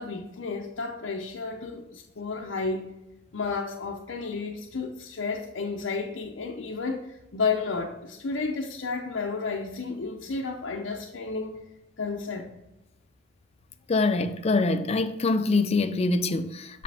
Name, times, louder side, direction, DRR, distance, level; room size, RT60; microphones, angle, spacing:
voice 1, 0.0-2.9 3.3-11.6 12.0-12.5, left 4 dB, 75° left, 0.6 m, -32 dB
voice 2, 13.9-16.8, left 3 dB, 35° left, 0.4 m, -24 dB
6.9 x 5.0 x 3.4 m
head